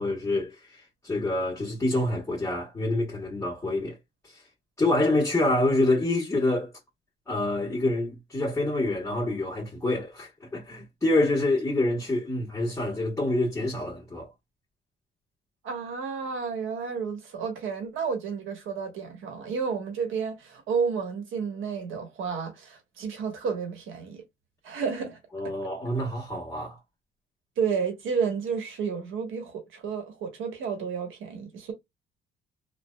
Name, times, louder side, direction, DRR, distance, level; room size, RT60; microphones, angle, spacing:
voice 1, 0.0-4.0 4.2-4.4 4.8-6.7 7.3-14.3 25.3-26.8, left 2 dB, 15° left, 1.2 m, -27 dB
voice 2, 15.6-24.2 24.6-25.2 25.4-25.5 27.6-31.7, right 6 dB, 85° right, 1.3 m, -31 dB
3.2 x 2.3 x 2.2 m
cardioid pair, 90°, 20 cm